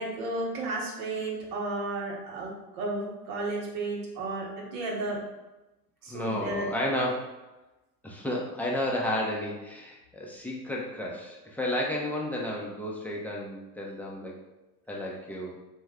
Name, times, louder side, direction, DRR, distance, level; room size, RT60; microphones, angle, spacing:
voice 1, 0.0-5.2 6.0-6.7, right 2 dB, 60° right, -1 dB, 1.1 m, -33 dB
voice 2, 6.1-7.3 8.0-14.4 14.9-15.5, left 1 dB, 5° left, -3 dB, 0.4 m, -32 dB
3.1 x 2.2 x 3.5 m, 1.0 s
hypercardioid pair, 90°, 49 cm